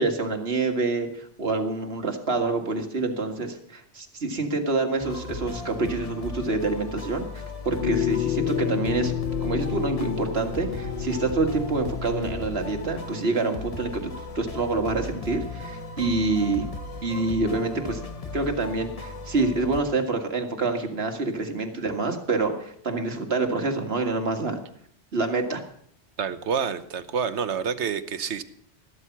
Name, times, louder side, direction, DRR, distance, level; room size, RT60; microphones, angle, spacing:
voice 1, 0.0-14.1 14.4-16.7 17.0-18.1 18.3-24.6 25.1-25.6, right 3 dB, 65° right, 5 dB, 2.1 m, -27 dB
sound 1, 5.0-19.8, left 3 dB, 35° left, 1.2 m, -37 dB
sound 2, 7.8-12.8, left 11 dB, 60° left, 1.2 m, -29 dB
voice 2, 26.2-28.4, right 6 dB, 85° right, 12 dB, 1.3 m, -28 dB
14.0 x 13.0 x 5.9 m, 0.64 s
omnidirectional pair, 1.1 m